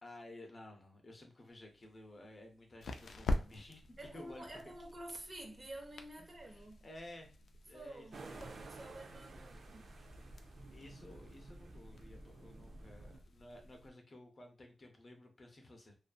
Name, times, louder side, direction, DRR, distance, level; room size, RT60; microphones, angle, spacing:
voice 1, 0.0-4.4 6.5-7.3 7.7-8.1 8.3-8.5 10.7-15.9, left 1 dB, 40° left, 0.6 m, -54 dB
sound 1, 1.5-13.9, left 1 dB, 75° left, 0.3 m, -46 dB
voice 2, 4.0-6.9 7.7-9.9, right 1 dB, 35° right, 0.8 m, -50 dB
sound 2, 8.1-13.2, right 2 dB, 75° right, 0.4 m, -52 dB
2.5 x 2.4 x 2.3 m
wide cardioid pair, 100°, 0 cm